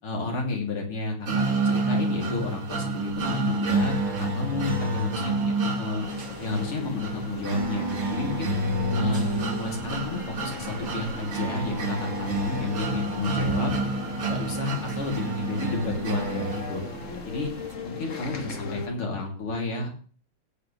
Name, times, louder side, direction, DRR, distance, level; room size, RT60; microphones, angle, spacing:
voice 1, 0.0-6.0 6.4-8.5 8.9-13.7 14.3-16.8 17.2-17.5 17.8-19.9, left 3 dB, 85° left, 0 dB, 3.9 m, -31 dB
sound 1, 1.3-17.2, right 2 dB, 65° right, 3.0 m, -29 dB
sound 2, 6.0-18.9, left 4 dB, 40° left, 1.4 m, -39 dB
16.5 x 8.7 x 3.3 m, 0.41 s
omnidirectional pair, 2.4 m